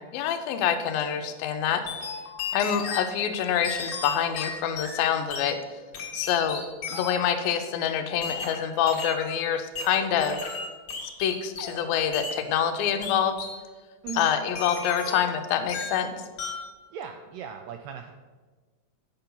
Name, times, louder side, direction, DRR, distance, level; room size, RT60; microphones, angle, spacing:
voice 1, 0.0-1.8 2.5-5.6 6.1-10.4 11.2-13.4 14.2-16.1, left 8 dB, 85° left, 8 dB, 2.5 m, -26 dB
sound 1, 1.9-3.1 3.6-5.5 5.9-7.3 8.2-9.3 9.7-11.9 12.1-12.4 13.0-13.6 14.1-15.4 15.7-16.1 16.4-16.7, left 5 dB, 60° left, 1.7 m, -35 dB
voice 2, 14.0-14.4 16.9-18.1, right 8 dB, 80° right, 5 dB, 2.0 m, -38 dB
8.8 x 5.7 x 5.5 m, 1.4 s
omnidirectional pair, 4.1 m